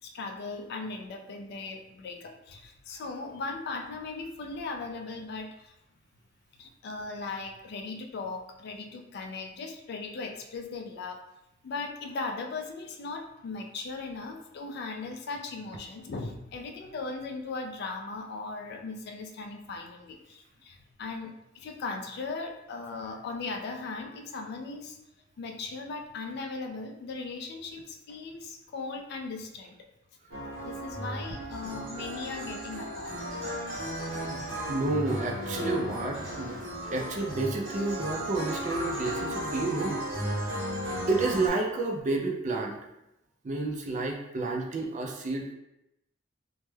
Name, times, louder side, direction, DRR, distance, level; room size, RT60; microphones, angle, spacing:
voice 1, 0.0-5.7 6.6-11.2 11.6-25.0 25.4-29.8 30.6-33.1, left 3 dB, 55° left, 4 dB, 0.3 m, -38 dB
sound 1, 30.3-41.5, equal, 80° right, 0.9 m, -35 dB
voice 2, 34.7-36.6 36.9-40.6 41.1-42.8 43.4-45.5, right 3 dB, 40° right, 1 dB, 0.4 m, -30 dB
2.2 x 2.1 x 3.1 m, 0.87 s
head